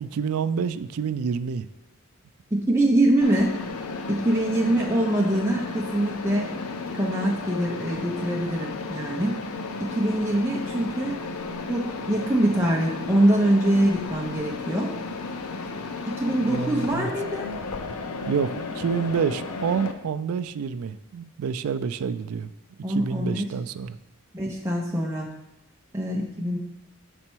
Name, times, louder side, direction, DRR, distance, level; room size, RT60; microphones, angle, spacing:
voice 1, 0.0-1.7 16.5-17.1 18.3-22.5 22.9-24.0, right 6 dB, 75° right, 12 dB, 0.3 m, -28 dB
voice 2, 2.5-3.5 4.1-6.5 6.9-9.4 9.8-11.2 11.7-14.9 16.1-17.5 22.8-23.5 24.3-25.3 25.9-26.6, right 1 dB, 10° right, -3 dB, 0.6 m, -24 dB
Mechanisms, 3.2-19.9, left 3 dB, 80° left, 0.6 m, -34 dB
6.7 x 4.2 x 4.5 m, 0.88 s
head